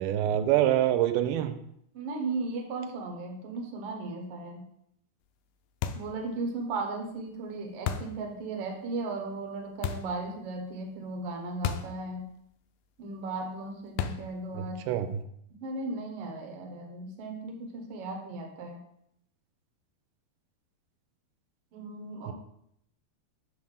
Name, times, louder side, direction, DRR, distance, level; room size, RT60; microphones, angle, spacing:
voice 1, 0.0-1.5 14.5-15.2 22.3-22.4, right 12 dB, 85° right, 8 dB, 2.5 m, -26 dB
voice 2, 1.9-4.6 5.9-12.3 13.0-14.9 15.6-18.8 21.7-22.3, right 3 dB, 70° right, 2 dB, 1.4 m, -36 dB
sound 1, 5.8-6.2 7.9-8.2 9.8-10.2 11.6-12.0 12.3-12.4 14.0-14.4, left 8 dB, 85° left, 2.4 m, -33 dB
7.3 x 3.7 x 6.4 m, 0.72 s
omnidirectional pair, 4.5 m